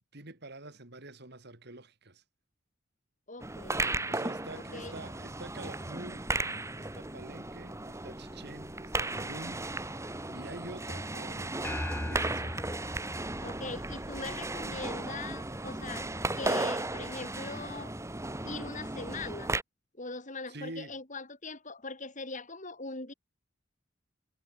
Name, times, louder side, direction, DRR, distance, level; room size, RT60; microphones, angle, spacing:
voice 1, 0.1-2.2 4.1-12.7 20.5-21.0, right 2 dB, 55° right, 3.5 m, -47 dB
voice 2, 3.3-4.0 4.6-4.9 13.4-16.1 16.4-17.9 18.4-19.5 20.0-23.1, left 3 dB, 40° left, 5.8 m, -41 dB
sound 1, 3.4-19.6, right 2 dB, 15° right, 1.8 m, -35 dB
sound 2, 11.6-14.3, left 1 dB, 10° left, 0.7 m, -38 dB
head